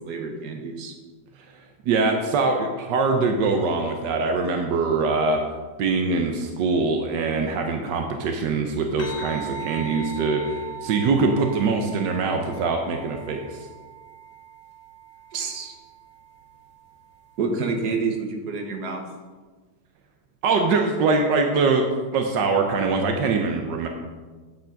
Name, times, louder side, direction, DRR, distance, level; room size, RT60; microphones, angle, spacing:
voice 1, 0.1-0.9 15.3-15.7 17.4-19.0, right 4 dB, 70° right, 3 dB, 1.6 m, -28 dB
voice 2, 1.9-5.4 5.8-13.7 20.4-21.8 22.1-23.9, right 4 dB, 85° right, 4 dB, 1.4 m, -23 dB
sound 1, 9.0-17.7, right 6 dB, 90° left, 1.9 m, -40 dB
8.6 x 5.9 x 5.1 m, 1.4 s
omnidirectional pair, 1.8 m